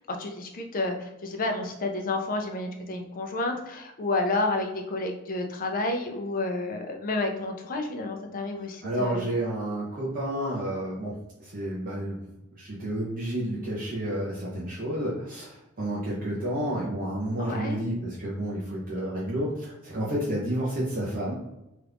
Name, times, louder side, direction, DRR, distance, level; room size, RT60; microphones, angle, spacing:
voice 1, 0.0-9.3 17.4-17.8, left 2 dB, 40° left, 4 dB, 0.5 m, -30 dB
voice 2, 8.8-12.2 12.5-21.4, right 1 dB, 40° right, -6 dB, 0.7 m, -30 dB
3.0 x 2.5 x 3.3 m, 0.92 s
head